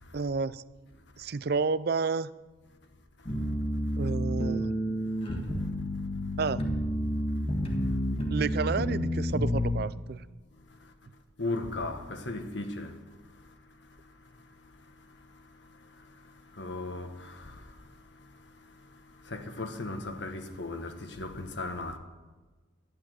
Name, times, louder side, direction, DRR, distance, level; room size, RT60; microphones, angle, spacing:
voice 1, 0.1-0.6 1.2-2.3 4.0-4.8 6.4-6.7 8.3-10.2, right 4 dB, 50° right, 0.4 m, -30 dB
sound 1, 3.3-9.8, equal, 30° left, 1.7 m, -30 dB
voice 2, 11.4-12.9 16.6-17.1 19.3-22.0, left 2 dB, 60° left, 1.3 m, -35 dB
12.5 x 11.0 x 7.6 m
head